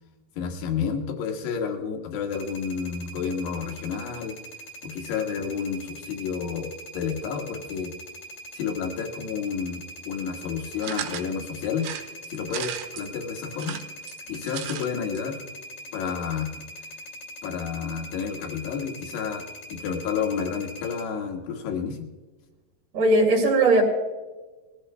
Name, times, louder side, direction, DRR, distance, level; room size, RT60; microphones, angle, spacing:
voice 1, 0.4-4.3 4.8-7.9 8.5-11.9 12.3-13.8 14.3-15.4 15.9-16.6 17.4-19.4 19.7-22.1, left 6 dB, 70° left, 2 dB, 3.6 m, -30 dB
sound 1, 2.3-21.0, equal, 50° left, 2.8 m, -42 dB
sound 2, 10.8-11.3 11.8-13.1 13.5-14.9 15.2-15.3 15.5-15.6, right 11 dB, 90° right, 3.3 m, -35 dB
voice 2, 22.9-23.8, right 2 dB, 40° right, -6 dB, 3.0 m, -18 dB
21.5 x 15.5 x 2.2 m, 1.2 s
omnidirectional pair, 5.4 m